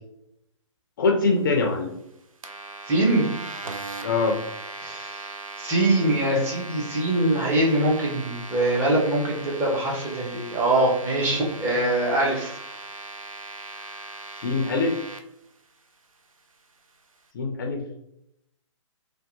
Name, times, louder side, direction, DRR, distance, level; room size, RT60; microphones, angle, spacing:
voice 1, 1.0-1.9 4.0-4.4 14.4-14.9 17.3-17.8, left 3 dB, 40° left, 3 dB, 0.4 m, -23 dB
sound 1, 2.4-15.2, right 3 dB, 90° right, 0.4 m, -39 dB
voice 2, 2.9-3.3 4.8-12.6, right 1 dB, 15° right, -4 dB, 0.6 m, -23 dB
2.7 x 2.1 x 2.5 m, 0.77 s
figure-of-eight pair, 130°, 17 cm